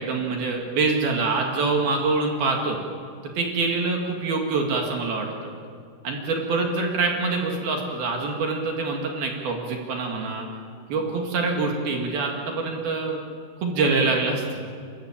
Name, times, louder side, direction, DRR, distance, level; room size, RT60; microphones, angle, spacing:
voice 1, 0.0-2.8 3.4-5.5 6.0-10.5 10.9-13.2 13.6-14.6, right 3 dB, 60° right, 1 dB, 3.5 m, -25 dB
29.5 x 14.5 x 8.8 m, 2.3 s
omnidirectional pair, 5.6 m